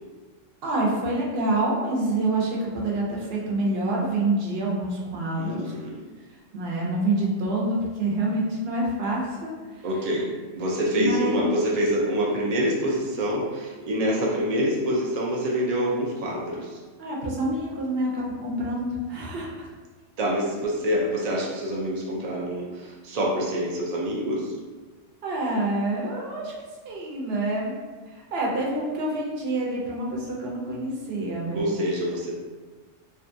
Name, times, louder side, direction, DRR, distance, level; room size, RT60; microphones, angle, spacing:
voice 1, 0.6-5.7 6.5-9.9 11.0-11.4 17.0-19.7 25.2-26.5 26.8-27.7 28.1-31.7, right 2 dB, 60° right, -3 dB, 0.8 m, -27 dB
voice 2, 5.4-6.0 9.8-16.8 20.2-24.5 31.5-32.3, equal, 85° right, -3 dB, 0.3 m, -26 dB
2.7 x 2.3 x 2.5 m, 1.3 s
omnidirectional pair, 1.3 m